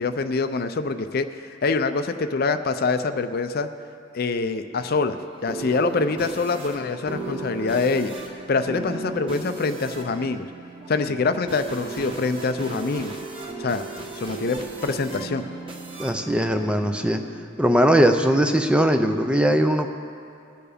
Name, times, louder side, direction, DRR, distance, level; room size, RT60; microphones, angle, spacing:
voice 1, 0.0-3.7 4.1-8.1 8.5-10.5 10.9-13.1 13.6-13.9 14.1-15.4, left 4 dB, 50° left, 10 dB, 0.5 m, -25 dB
sound 1, 4.7-17.4, right 3 dB, 25° right, 1.3 m, -36 dB
voice 2, 16.0-17.2 17.6-19.9, equal, 5° right, 6 dB, 0.4 m, -20 dB
20.5 x 6.9 x 5.1 m, 2.4 s
head